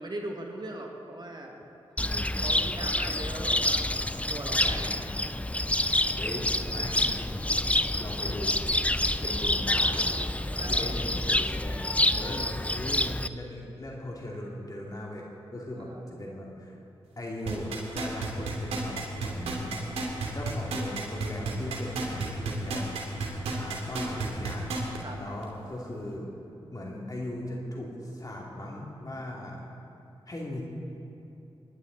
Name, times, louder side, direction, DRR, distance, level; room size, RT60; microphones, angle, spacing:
voice 1, 0.0-1.6 2.4-5.1 9.4-9.5 10.5-10.9 15.7-16.1 25.0-25.2, right 1 dB, 40° right, 1 dB, 2.0 m, -40 dB
voice 2, 2.0-2.4 4.6-5.1 6.2-7.4 8.0-8.6 9.2-15.3 15.5-16.8 17.2-19.9 20.3-23.0 23.6-24.8 25.2-26.3 26.7-29.7 30.3-30.6, left 1 dB, 35° left, -2 dB, 2.6 m, -39 dB
Cricket, 2.0-13.3, left 1 dB, 10° left, 0.6 m, -27 dB
sound 1, 17.5-25.0 25.4-25.5, right 4 dB, 90° right, 2.8 m, -31 dB
23.5 x 11.0 x 4.0 m, 2.9 s
supercardioid pair, 40°, 11 cm